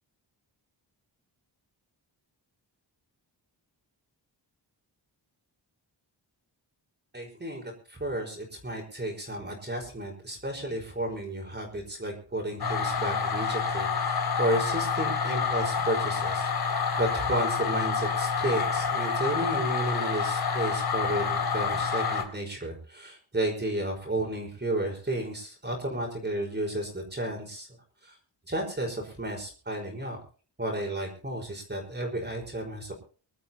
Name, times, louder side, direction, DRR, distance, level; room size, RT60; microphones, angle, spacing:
voice 1, 7.1-27.7 28.0-28.1 28.5-30.2 30.6-32.9, right 1 dB, 25° right, 0 dB, 5.0 m, -32 dB
sound 1, 12.6-22.2, left 5 dB, 55° left, 3.4 m, -28 dB
26.0 x 12.5 x 3.0 m, 0.39 s
wide cardioid pair, 170°, 44 cm